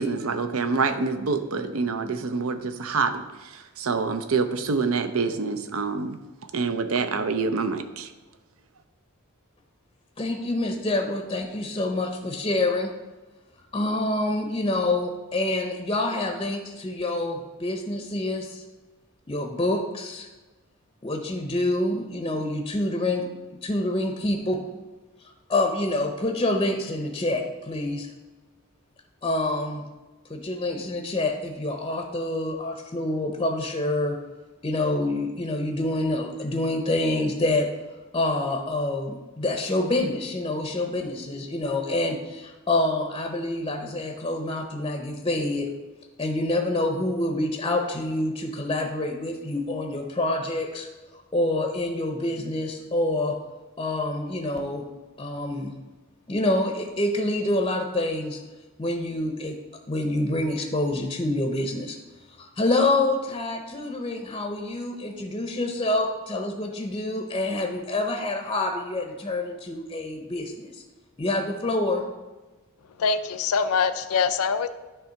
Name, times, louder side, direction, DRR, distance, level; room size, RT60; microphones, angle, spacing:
voice 1, 0.0-6.2 6.5-8.1, right 4 dB, 75° right, 9 dB, 0.6 m, -26 dB
voice 2, 10.2-12.9 13.7-18.6 19.3-20.3 21.0-23.3 23.5-24.6 25.2-28.1 29.2-29.9 30.3-34.2 34.6-37.7 38.1-45.7 46.2-53.4 53.8-54.9 55.2-55.7 56.3-58.4 58.8-59.6 59.9-62.0 62.3-70.8 71.2-72.0, left 2 dB, 20° left, 4 dB, 0.6 m, -27 dB
voice 3, 73.0-74.7, left 5 dB, 80° left, 11 dB, 0.4 m, -24 dB
10.0 x 3.4 x 5.7 m, 1.2 s
head